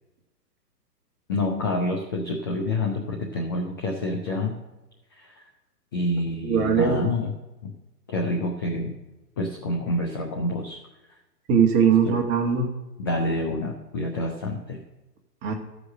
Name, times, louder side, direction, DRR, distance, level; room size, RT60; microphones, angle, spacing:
voice 1, 1.3-4.6 5.2-5.4 5.9-7.3 7.6-7.7 8.1-8.9 9.4-10.8 12.1-12.2 13.0-14.8, left 1 dB, 15° left, 0 dB, 0.4 m, -27 dB
voice 2, 6.4-7.1 11.5-12.7 15.4-15.5, right 6 dB, 25° right, 2 dB, 1.7 m, -20 dB
14.5 x 4.9 x 6.4 m, 1.0 s
hypercardioid pair, 135°, 49 cm